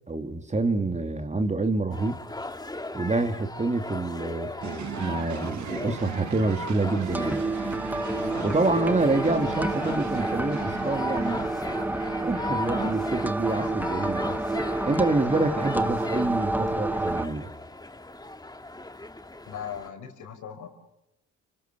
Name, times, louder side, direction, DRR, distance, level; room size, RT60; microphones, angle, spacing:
voice 1, 0.1-2.2 2.9-7.5 8.4-11.4 12.2-14.4 14.8-17.5, right 2 dB, 25° right, 7 dB, 2.8 m, -27 dB
sound 1, 1.9-19.9, left 2 dB, 15° left, 2.5 m, -38 dB
sound 2, 4.6-13.2, right 10 dB, 70° right, 1.4 m, -39 dB
sound 3, 7.1-17.3, right 2 dB, 5° right, 1.3 m, -29 dB
voice 2, 19.5-20.7, left 8 dB, 75° left, 6 dB, 5.4 m, -38 dB
30.0 x 25.5 x 6.9 m, 0.90 s
cardioid pair, 90°, 30 cm